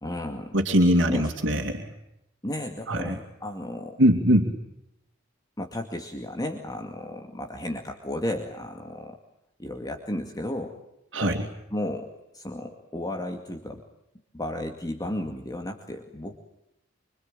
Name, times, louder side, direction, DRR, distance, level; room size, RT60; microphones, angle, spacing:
voice 1, 0.0-0.6 1.1-1.3 2.4-4.0 5.6-9.2 9.6-10.7 11.7-13.8 14.3-16.4, left 1 dB, 20° left, 3 dB, 2.3 m, -34 dB
voice 2, 0.5-1.9 2.9-3.2 4.0-4.5 11.1-11.5, equal, 70° right, 1 dB, 2.7 m, -22 dB
25.5 x 25.5 x 8.9 m, 0.82 s
head